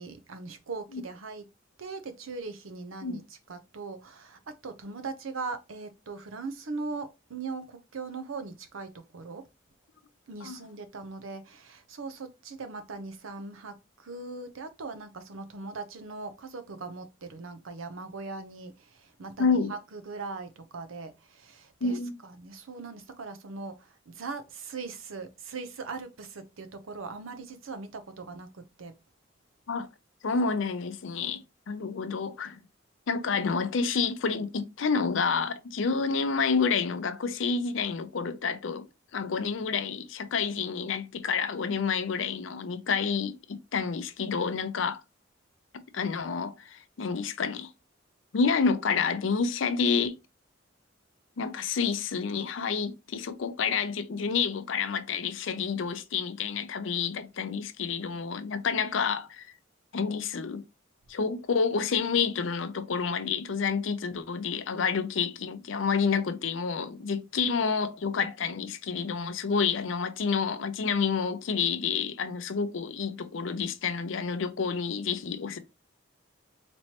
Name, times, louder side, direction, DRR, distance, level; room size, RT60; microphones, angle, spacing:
voice 1, 0.0-1.5 1.8-9.5 10.3-13.8 14.0-18.7 19.2-23.8 24.1-28.9, right 4 dB, 85° right, 0.7 m, -40 dB
voice 2, 19.4-19.7 21.8-22.2 29.7-29.9 30.2-32.6 33.1-38.8 39.1-45.0 45.9-47.7 48.3-50.2 51.4-59.5 59.9-60.6 61.1-75.6, left 5 dB, 75° left, 0.5 m, -29 dB
4.3 x 3.0 x 2.9 m
head